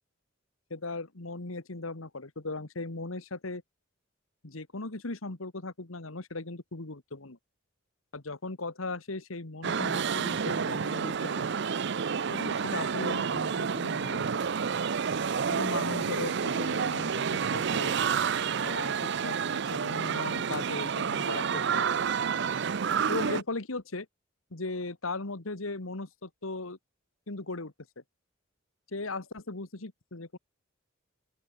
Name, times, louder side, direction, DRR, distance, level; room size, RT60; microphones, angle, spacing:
voice 1, 0.7-3.6 4.4-7.4 8.1-11.5 12.3-14.2 15.5-18.0 18.6-21.9 23.1-24.1 24.5-26.8 27.3-27.7 28.9-30.4, left 3 dB, 80° left, 1.8 m, -38 dB
sound 1, 9.6-23.4, right 6 dB, 60° right, 0.5 m, -29 dB
open air
head